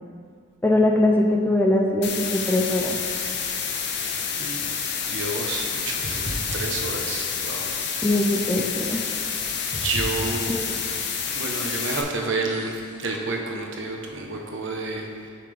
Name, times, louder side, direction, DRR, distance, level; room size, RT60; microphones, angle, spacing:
voice 1, 0.6-3.0 8.0-9.0 10.5-10.6, left 1 dB, 10° left, 1 dB, 0.4 m, -21 dB
sound 1, 2.0-12.0, left 6 dB, 55° left, 0.6 m, -29 dB
voice 2, 5.1-7.6 9.8-10.5 11.3-15.3, right 3 dB, 65° right, 1 dB, 0.8 m, -30 dB
sound 2, 6.0-7.6 7.9-8.4 8.8-9.4 9.7-11.3 11.6-12.1 12.5-13.1, equal, 85° right, 1.2 m, -37 dB
7.1 x 5.8 x 3.3 m, 2.1 s
head